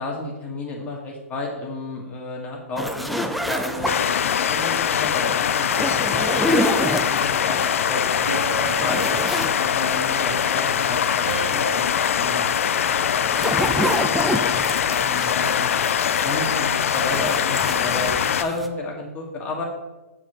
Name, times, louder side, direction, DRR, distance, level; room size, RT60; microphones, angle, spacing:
voice 1, 0.0-9.1 9.5-12.4 12.7-13.1 13.6-13.7 15.0-15.7 16.0-19.6, left 2 dB, 20° left, -2 dB, 1.7 m, -32 dB
sound 1, 2.8-4.2 5.6-7.4 7.9-8.0 8.4-9.6 9.9-10.0 12.8-16.6 16.9-18.7, equal, ahead, 0.4 m, -27 dB
sound 2, 3.9-18.4, left 8 dB, 65° left, 0.4 m, -22 dB
sound 3, 6.1-7.1 8.3-10.2 11.3-11.7, right 4 dB, 75° right, 2.7 m, -34 dB
7.3 x 7.3 x 3.1 m, 1.1 s
hypercardioid pair, 130°, 8 cm